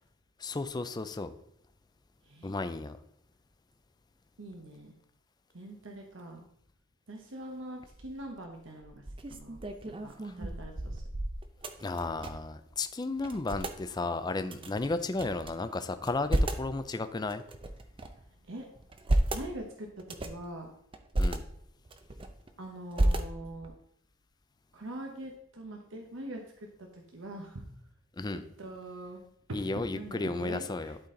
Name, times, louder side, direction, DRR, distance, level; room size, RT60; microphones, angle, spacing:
voice 1, 0.4-1.3 2.4-3.0 10.2-10.3 11.8-17.4 21.2-21.4 28.2-28.4 29.5-31.0, left 3 dB, 20° left, 10 dB, 0.4 m, -33 dB
voice 2, 2.2-2.6 4.4-4.9 5.5-6.4 7.1-9.0 9.3-11.0 14.5-14.6 18.4-18.7 19.3-20.7 22.6-23.7 24.7-27.7 28.3-29.2 29.9-30.9, right 1 dB, 65° right, 2 dB, 1.0 m, -43 dB
sound 1, 7.9-8.3 8.8-12.6 12.8-12.9 13.2-13.8 14.5-15.5 16.0-16.7 17.3-18.2 18.8-19.5 20.0-20.5 20.9-21.4 21.9-22.5 22.9-23.7, right 1 dB, 25° right, 0.6 m, -32 dB
11.5 x 4.3 x 3.8 m, 0.71 s
head